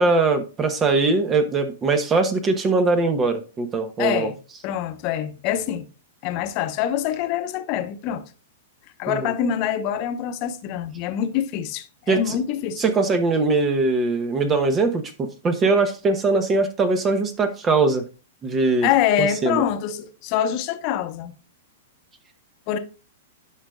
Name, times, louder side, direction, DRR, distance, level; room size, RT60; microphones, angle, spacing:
voice 1, 0.0-4.3 9.1-9.2 12.1-12.4 12.8-18.0 18.4-18.9 19.2-19.6, right 3 dB, 25° right, 1.0 m, -21 dB
voice 2, 4.0-4.4 4.6-5.9 6.2-8.2 9.0-12.8 18.8-21.3 22.7-22.8, left 10 dB, 45° left, 1.0 m, -25 dB
11.5 x 5.1 x 2.4 m
hypercardioid pair, 115°, 0 cm